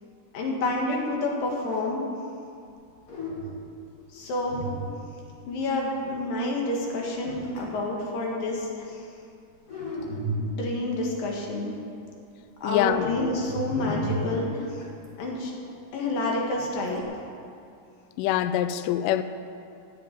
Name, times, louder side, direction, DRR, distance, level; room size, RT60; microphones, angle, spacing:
voice 1, 0.3-2.0 4.1-4.6 5.5-9.1 10.4-11.8 12.6-14.8 15.2-15.5 15.9-17.0, left 2 dB, 65° left, -1 dB, 3.6 m, -29 dB
sound 1, 3.1-3.7 4.4-5.3 7.2-7.8 9.7-10.8 12.9-15.1 16.5-17.0, equal, 30° left, 1.6 m, -33 dB
voice 2, 12.6-13.1 18.2-19.2, left 12 dB, 90° left, 12 dB, 1.9 m, -24 dB
10.5 x 9.4 x 8.9 m, 2.5 s
omnidirectional pair, 4.4 m